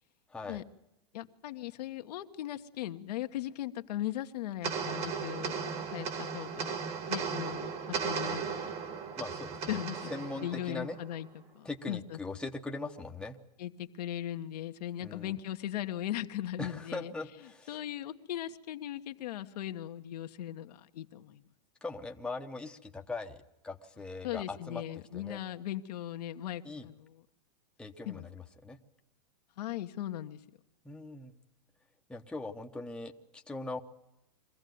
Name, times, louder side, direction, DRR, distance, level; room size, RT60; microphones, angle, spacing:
voice 1, 0.3-0.6 9.2-9.7 10.1-11.0 11.6-13.4 15.0-15.4 16.6-17.7 21.8-24.8 25.1-25.4 26.6-26.9 27.8-28.8 30.8-31.3 32.1-33.8, left 3 dB, 5° left, 3 dB, 1.0 m, -40 dB
voice 2, 1.1-6.8 7.1-8.7 9.7-10.1 10.4-11.3 11.5-12.2 13.6-17.1 17.7-21.4 24.2-27.2 28.1-28.2 29.6-30.4, left 12 dB, 75° left, 7 dB, 1.2 m, -38 dB
sound 1, 4.6-11.3, right 6 dB, 30° right, 1.7 m, -36 dB
23.5 x 15.5 x 9.3 m, 0.88 s
supercardioid pair, 145°, 21 cm